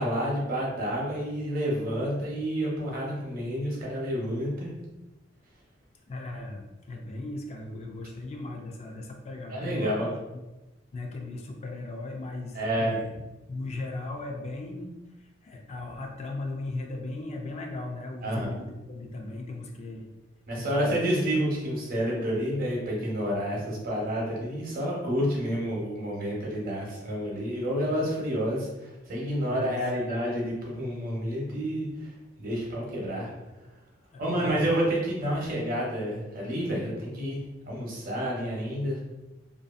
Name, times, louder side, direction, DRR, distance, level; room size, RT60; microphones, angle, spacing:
voice 1, 0.0-4.7 9.5-10.1 12.5-13.1 18.2-18.6 20.5-32.1 32.4-33.3 34.2-37.4 37.7-39.0, equal, 50° right, -3 dB, 0.8 m, -29 dB
voice 2, 6.1-10.1 10.9-13.1 13.5-20.1 20.6-21.1 29.4-29.8 34.1-34.7, left 2 dB, 35° left, 2 dB, 0.3 m, -37 dB
2.6 x 2.3 x 2.4 m, 1.0 s
head